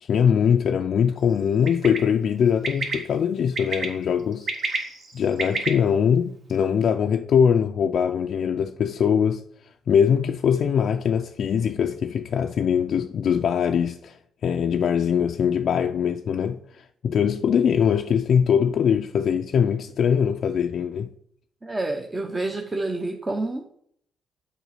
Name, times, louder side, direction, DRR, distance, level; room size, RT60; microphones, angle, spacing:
voice 1, 0.0-4.5 5.1-9.4 9.9-21.1, left 7 dB, 60° left, 0.3 m, -22 dB
Bird, 1.7-2.0 2.6-2.9 3.6-3.9 4.3-5.7, right 3 dB, 60° right, 1.5 m, -27 dB
voice 2, 21.6-23.7, right 2 dB, 25° right, 0.7 m, -28 dB
7.2 x 4.1 x 5.6 m
cardioid pair, 90°, 0 cm